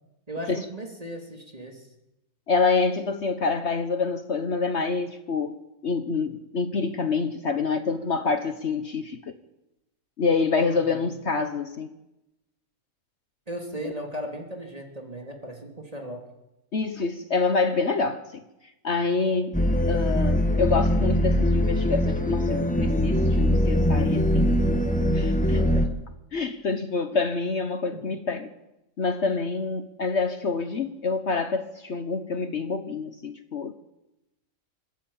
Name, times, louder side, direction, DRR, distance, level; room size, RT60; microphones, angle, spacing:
voice 1, 0.3-1.9 10.6-11.1 13.5-16.3 25.5-25.9 27.9-28.0, right 1 dB, 25° right, 2.9 m, -37 dB
voice 2, 2.5-9.2 10.2-11.9 13.8-13.9 16.7-18.4 18.8-19.6 19.9-24.5 25.1-25.8 26.3-28.5 29.0-33.7, left 4 dB, 55° left, 1.3 m, -27 dB
sound 1, 19.5-25.9, equal, 5° left, 1.5 m, -22 dB
25.5 x 13.0 x 8.7 m
omnidirectional pair, 1.5 m